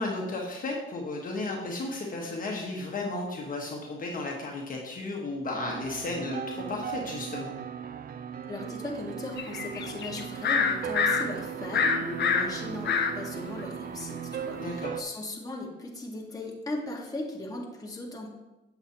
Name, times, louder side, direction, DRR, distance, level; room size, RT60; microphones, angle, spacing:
voice 1, 0.0-7.5 14.5-15.0, left 2 dB, 45° left, -1 dB, 1.4 m, -34 dB
sound 1, 5.4-15.0, right 8 dB, 50° right, 0.4 m, -38 dB
voice 2, 8.5-18.3, left 2 dB, 20° left, -2 dB, 1.7 m, -37 dB
sound 2, 9.4-11.2 11.7-13.1 13.6-13.7, left 6 dB, 60° left, 0.8 m, -26 dB
7.9 x 6.9 x 2.9 m, 1.0 s
cardioid pair, 90°, 20 cm